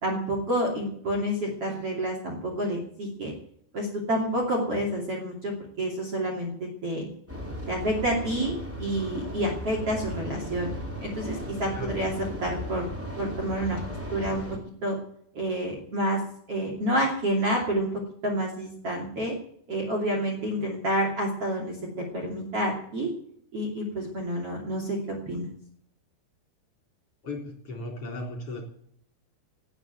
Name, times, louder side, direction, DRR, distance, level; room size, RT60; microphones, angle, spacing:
voice 1, 0.0-3.3 3.7-7.1 7.7-10.7 11.0-12.9 13.2-14.4 14.8-14.9 15.3-16.2 16.5-19.3 19.7-21.8 22.1-23.1 23.5-25.5, right 1 dB, 35° right, -1 dB, 3.2 m, -29 dB
sound 1, 7.3-14.6, equal, 5° right, 2.8 m, -36 dB
voice 2, 27.2-28.6, left 2 dB, 35° left, 1 dB, 4.5 m, -36 dB
18.5 x 7.5 x 9.1 m, 0.66 s
omnidirectional pair, 5.2 m